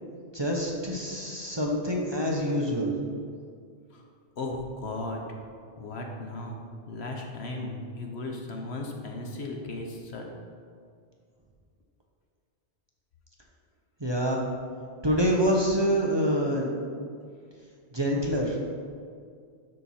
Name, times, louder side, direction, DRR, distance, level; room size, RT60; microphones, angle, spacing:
voice 1, 0.3-2.9 14.0-14.4 15.0-16.7 17.9-18.6, equal, 25° right, -2 dB, 0.9 m, -26 dB
voice 2, 4.4-5.2 5.8-10.3, left 2 dB, 65° left, 1 dB, 1.3 m, -36 dB
12.5 x 4.5 x 4.3 m, 2.2 s
omnidirectional pair, 1.2 m